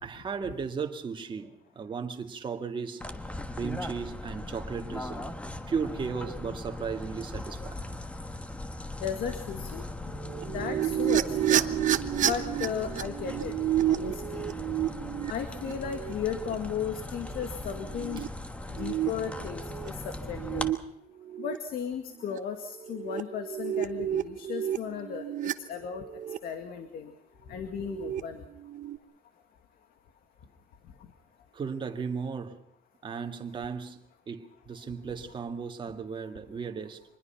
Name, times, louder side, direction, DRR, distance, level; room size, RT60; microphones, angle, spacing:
voice 1, 0.0-3.1 3.5-5.3 5.7-7.9 18.2-18.3 31.5-32.6 33.0-34.0 34.3-37.0, right 5 dB, 30° right, 2.0 m, -35 dB
sound 1, 3.0-20.7, left 1 dB, 10° left, 1.3 m, -39 dB
voice 2, 9.0-9.8 10.5-11.7 12.2-13.5 13.9-14.4 15.3-18.2 18.8-20.7 21.4-25.2 25.7-26.0 26.4-27.1 27.5-28.4, left 7 dB, 75° left, 2.1 m, -35 dB
sound 2, 10.1-16.5 17.3-17.4 17.8-18.3 18.8-19.9 20.3-20.8 21.2-21.6 22.2-22.4 22.7-25.5 26.0-26.4 27.7-28.2 28.6-29.0, right 12 dB, 55° right, 1.0 m, -30 dB
25.0 x 20.5 x 5.9 m
cardioid pair, 155°, 15 cm